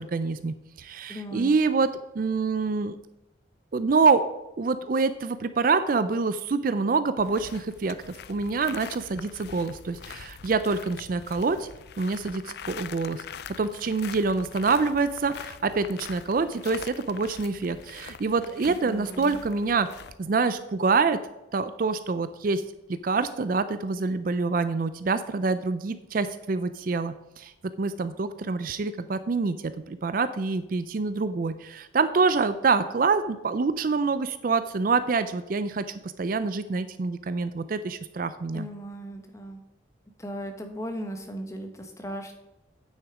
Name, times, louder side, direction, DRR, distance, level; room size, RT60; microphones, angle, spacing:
voice 1, 0.0-1.9 2.2-3.0 3.7-4.3 4.6-11.7 12.0-13.2 13.6-19.9 20.2-21.2 21.5-22.6 22.9-27.5 27.8-38.7, right 4 dB, 45° right, 12 dB, 0.4 m, -26 dB
voice 2, 1.1-1.5 18.8-19.4 38.5-39.6 40.2-42.3, equal, 15° left, 5 dB, 1.1 m, -37 dB
sound 1, 7.2-20.2, left 7 dB, 55° left, 0.4 m, -43 dB
9.2 x 6.5 x 4.9 m, 0.94 s
head